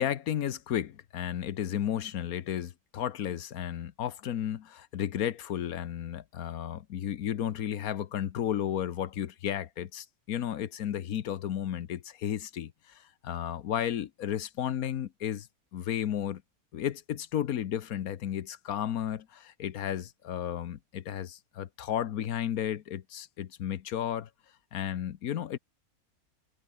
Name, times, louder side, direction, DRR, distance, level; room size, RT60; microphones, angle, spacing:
voice 1, 0.0-15.5 15.7-16.4 16.7-24.3 24.7-25.6, left 10 dB, 75° left, 1.3 m, -33 dB
omnidirectional pair, 1.6 m